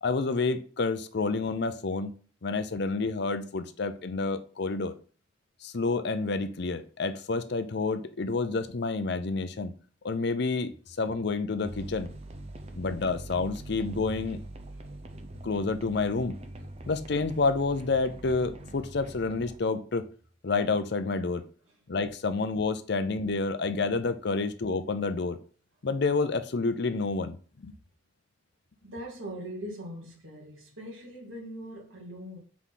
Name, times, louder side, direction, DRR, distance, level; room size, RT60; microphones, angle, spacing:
voice 1, 0.0-2.1 2.4-4.9 5.6-9.7 10.0-10.7 11.0-12.1 12.8-14.4 15.4-16.4 16.9-20.1 20.4-21.4 21.9-25.4 25.8-27.4 27.6-27.7, left 3 dB, 60° left, 0.6 m, -29 dB
sound 1, 11.6-19.6, right 1 dB, 35° right, 0.7 m, -43 dB
voice 2, 28.8-32.4, equal, 90° right, 2.2 m, -41 dB
4.8 x 4.0 x 5.7 m
head